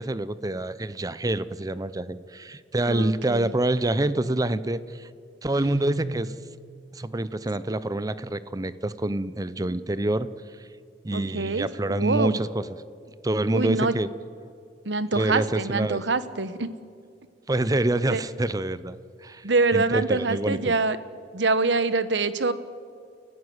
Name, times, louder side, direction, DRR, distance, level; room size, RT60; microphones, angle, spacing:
voice 1, 0.0-5.1 5.4-6.3 6.9-10.3 11.0-12.6 13.2-14.1 15.1-16.0 17.5-19.0 19.2-19.4 19.7-20.7, right 1 dB, 20° right, 15 dB, 0.6 m, -26 dB
voice 2, 2.9-3.5 11.1-12.4 13.5-13.9 14.8-16.7 18.1-18.2 19.4-21.0 21.3-22.5, right 3 dB, 90° right, 13 dB, 1.1 m, -25 dB
Guitar, 5.5-6.8, right 1 dB, 60° right, 7.3 m, -36 dB
29.5 x 15.0 x 8.0 m, 2.3 s
head